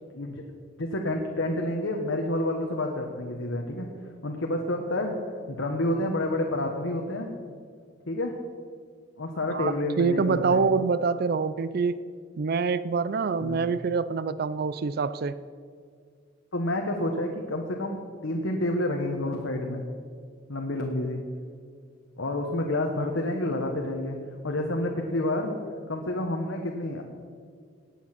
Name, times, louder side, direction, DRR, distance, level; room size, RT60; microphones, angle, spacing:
voice 1, 0.1-0.4 0.8-3.9 4.2-5.1 5.5-7.3 8.1-8.3 9.2-10.6 13.4-13.6 16.5-19.8 20.5-21.2 22.2-24.2 24.4-25.5 25.9-27.0, left 1 dB, 85° left, 2 dB, 1.3 m, -29 dB
voice 2, 9.5-12.1 12.4-15.4, right 5 dB, 50° right, 15 dB, 0.4 m, -26 dB
18.5 x 8.7 x 6.0 m, 2.1 s
head